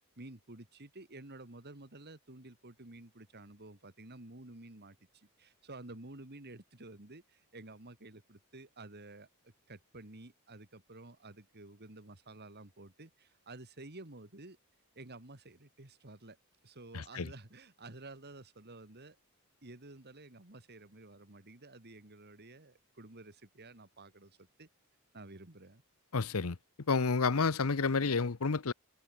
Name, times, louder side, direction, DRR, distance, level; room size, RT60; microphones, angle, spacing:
voice 1, 0.2-14.6 15.0-16.4 16.6-19.2 19.6-24.7 25.1-25.8, right 2 dB, 45° right, 2.4 m, -51 dB
voice 2, 16.9-17.3 26.1-26.6 26.9-28.7, left 4 dB, 70° left, 0.8 m, -30 dB
head